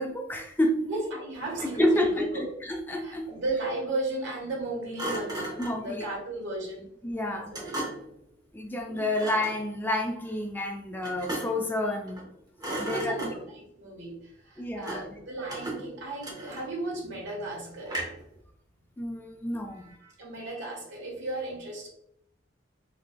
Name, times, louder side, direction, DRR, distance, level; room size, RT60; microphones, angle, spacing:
voice 1, 0.0-0.8 1.8-3.3 5.6-6.1 7.0-7.6 8.5-12.2 12.8-13.3 14.6-15.2 19.0-19.9, left 1 dB, 10° left, 3 dB, 0.3 m, -29 dB
voice 2, 0.8-2.5 3.0-5.5 5.8-6.9 7.3-7.7 8.9-9.1 11.4-11.5 12.6-18.0 19.7-21.9, right 2 dB, 80° right, -2 dB, 1.4 m, -35 dB
Thump thud, 1.4-2.2 5.0-5.9 7.5-8.2 9.1-9.6 11.0-11.7 12.1-12.3 12.6-13.6 14.8-15.2 15.5-16.9 17.9-18.3, right 1 dB, 20° right, 0.8 m, -36 dB
3.9 x 2.9 x 2.2 m, 0.71 s
head